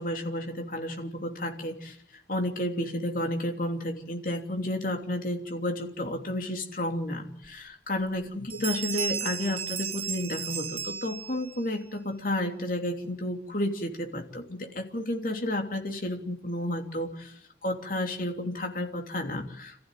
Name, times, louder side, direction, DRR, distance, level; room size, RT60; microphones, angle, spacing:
voice 1, 0.0-2.0 2.3-17.3 17.6-19.8, left 1 dB, 50° left, 4 dB, 3.1 m, -31 dB
Bell, 7.4-7.5 8.0-8.2 8.5-11.6, right 7 dB, 30° right, 1.0 m, -34 dB
27.5 x 15.0 x 9.2 m, 0.69 s
head